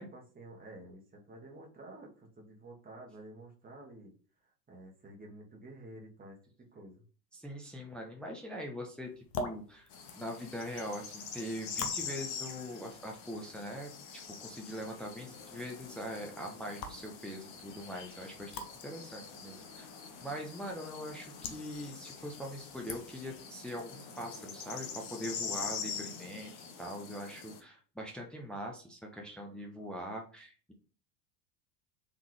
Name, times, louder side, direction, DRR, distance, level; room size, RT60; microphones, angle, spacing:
voice 1, 0.0-4.1 4.4-7.0, right 1 dB, 20° right, -1 dB, 1.4 m, -51 dB
voice 2, 7.3-9.1 9.4-9.9 10.1-19.9 20.2-26.5 26.8-30.7, equal, ahead, 0 dB, 0.7 m, -42 dB
sound 1, 9.0-23.4, left 3 dB, 75° left, 0.9 m, -48 dB
sound 2, 9.9-27.6, left 6 dB, 45° left, 1.1 m, -44 dB
3.8 x 3.5 x 3.2 m, 0.39 s
figure-of-eight pair, 80°, 48 cm